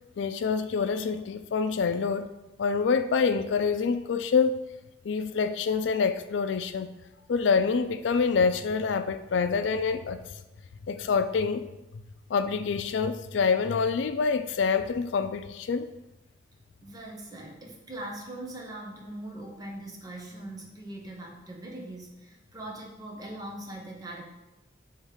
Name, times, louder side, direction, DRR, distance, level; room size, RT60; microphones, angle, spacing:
voice 1, 0.2-2.3 2.6-4.6 5.0-6.9 7.3-10.2 10.9-11.7 12.3-15.9, left 5 dB, 85° left, 0.4 m, -26 dB
voice 2, 16.8-24.2, right 1 dB, 20° right, 1.0 m, -41 dB
6.5 x 3.2 x 4.9 m
head